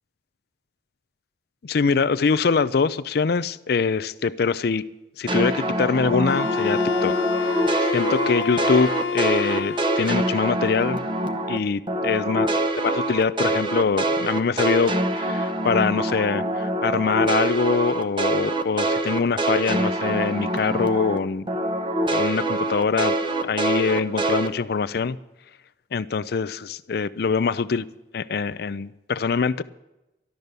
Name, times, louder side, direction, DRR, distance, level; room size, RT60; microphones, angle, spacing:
voice 1, 1.6-4.8 5.2-7.7 7.9-11.1 11.5-12.5 12.8-21.5 22.1-23.1 23.4-25.2 25.9-27.9 28.1-29.6, left 5 dB, 60° left, 16 dB, 0.4 m, -24 dB
sound 1, 5.3-11.6 11.9-21.2 21.5-24.5, right 2 dB, 25° right, 0.9 m, -25 dB
Wind instrument woodwind instrument, 6.3-10.4, left 5 dB, 90° left, 1.1 m, -27 dB
12.5 x 12.0 x 6.7 m, 0.98 s
head